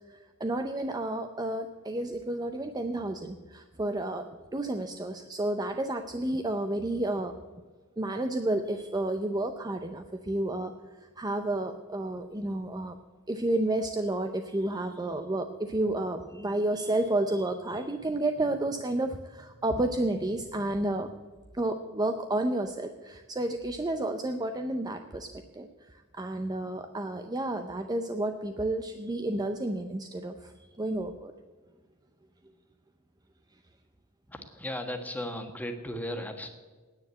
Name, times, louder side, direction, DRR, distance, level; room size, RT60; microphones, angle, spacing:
voice 1, 0.1-4.3 4.5-7.4 8.0-10.7 11.0-13.0 13.3-21.1 21.5-25.3 25.5-31.3, right 1 dB, 20° right, 7 dB, 0.6 m, -31 dB
voice 2, 34.3-36.5, left 1 dB, 10° left, 4 dB, 1.4 m, -36 dB
9.7 x 9.6 x 8.3 m, 1.4 s
head